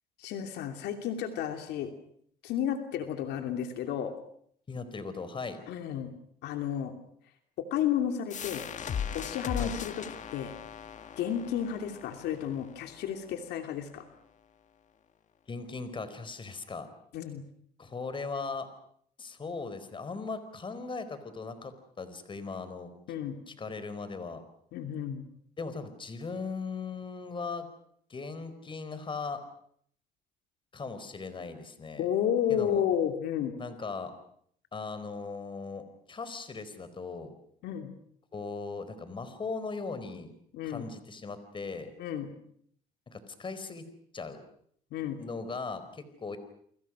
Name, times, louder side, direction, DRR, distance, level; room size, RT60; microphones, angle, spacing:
voice 1, 0.2-1.9 2.4-4.1 5.7-6.1 6.4-7.0 7.6-8.6 9.1-10.0 10.3-10.5 11.2-14.1 17.1-17.4 23.1-23.4 24.7-25.3 32.0-33.6 37.6-37.9 40.5-40.9 42.0-42.3 44.9-45.2, left 9 dB, 80° left, 6 dB, 2.9 m, -32 dB
voice 2, 4.7-5.6 9.6-9.7 15.5-16.9 17.8-18.7 19.2-22.9 23.5-24.4 25.6-27.7 28.1-29.4 30.7-32.0 32.5-32.8 33.6-34.1 34.7-37.3 38.3-40.3 40.6-41.9 43.1-43.9 44.1-44.4 45.2-46.4, left 4 dB, 30° left, 11 dB, 4.4 m, -38 dB
sound 1, 8.3-13.7, left 7 dB, 45° left, 1.8 m, -39 dB
30.0 x 24.5 x 6.3 m, 0.65 s
cardioid pair, 110°, 17 cm